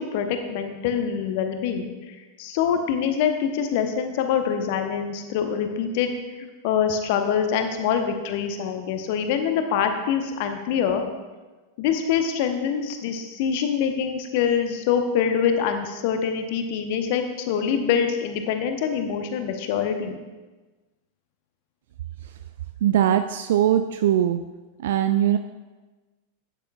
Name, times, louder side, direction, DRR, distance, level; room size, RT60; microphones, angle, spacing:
voice 1, 0.0-6.1 6.4-11.0 11.8-20.2, left 7 dB, 50° left, 6 dB, 0.9 m, -25 dB
voice 2, 22.8-24.4 24.8-25.4, right 11 dB, 55° right, 9 dB, 0.3 m, -21 dB
12.0 x 9.1 x 2.3 m, 1.2 s
figure-of-eight pair, 90°, 0 cm